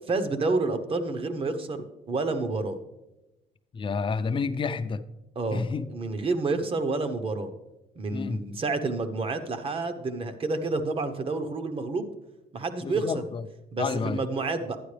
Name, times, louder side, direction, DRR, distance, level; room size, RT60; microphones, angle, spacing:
voice 1, 0.1-2.8 5.3-7.5 8.0-12.1 12.5-13.2 13.7-14.8, right 3 dB, 35° right, 1.0 m, -29 dB
voice 2, 3.7-5.0 5.5-5.9 8.1-8.4 12.8-13.4 13.8-14.2, left 5 dB, 30° left, 0.5 m, -29 dB
11.0 x 9.3 x 3.3 m
cardioid pair, 110°, 17 cm